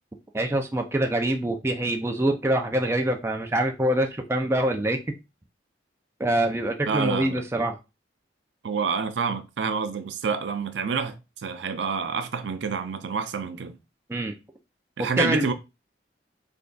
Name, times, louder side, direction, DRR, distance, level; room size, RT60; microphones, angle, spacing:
voice 1, 0.3-5.0 6.2-7.8 14.1-14.3 15.0-15.5, right 1 dB, 15° right, 0.4 m, -25 dB
voice 2, 6.9-7.4 8.6-13.8 15.0-15.5, right 5 dB, 75° right, 0.5 m, -28 dB
3.3 x 2.3 x 3.8 m
head